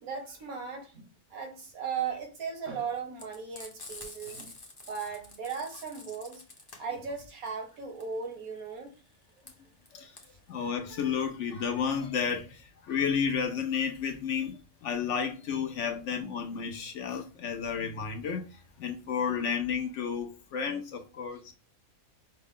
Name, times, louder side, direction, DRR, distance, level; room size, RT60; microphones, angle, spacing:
voice 1, 0.0-4.5 4.9-6.4 6.8-8.9 10.3-10.4, right 6 dB, 80° right, 1.5 m, -37 dB
Frying (food), 3.2-11.9, left 2 dB, 20° left, 0.7 m, -48 dB
voice 2, 10.5-21.5, left 7 dB, 65° left, 0.8 m, -32 dB
5.5 x 2.0 x 3.6 m
omnidirectional pair, 1.5 m